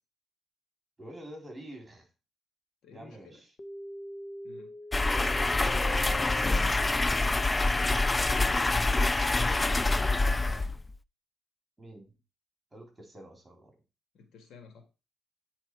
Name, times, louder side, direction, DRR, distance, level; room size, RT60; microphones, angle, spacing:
voice 1, 1.0-2.1 2.9-3.5 5.0-6.6 9.2-9.8 11.8-12.1 12.7-13.7, right 1 dB, 20° right, 2 dB, 3.8 m, -47 dB
voice 2, 2.8-3.4 4.4-4.8 9.3-9.9 10.5-10.7 14.1-14.9, left 5 dB, 75° left, 5 dB, 1.8 m, -53 dB
sound 1, 3.6-9.6, left 3 dB, 35° left, 1.1 m, -43 dB
sound 2, 4.9-11.0, left 2 dB, 20° left, 0.3 m, -26 dB
9.0 x 4.2 x 4.7 m, 0.30 s
cardioid pair, 90°, 0 cm